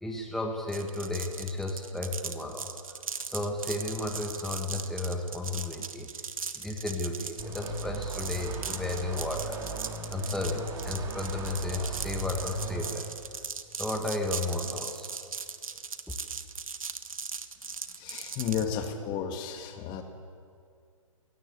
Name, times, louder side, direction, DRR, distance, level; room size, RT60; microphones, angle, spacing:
voice 1, 0.0-2.7 3.3-6.1 6.5-9.6 10.1-13.1 13.8-15.1, left 2 dB, ahead, 2 dB, 1.5 m, -33 dB
sound 1, 0.7-18.9, right 5 dB, 75° right, 1.5 m, -39 dB
sound 2, 7.4-12.9, right 3 dB, 20° right, 3.2 m, -38 dB
voice 2, 18.0-20.0, left 8 dB, 25° left, 6 dB, 1.9 m, -33 dB
22.0 x 17.0 x 8.4 m, 2.3 s
figure-of-eight pair, 130°, 18 cm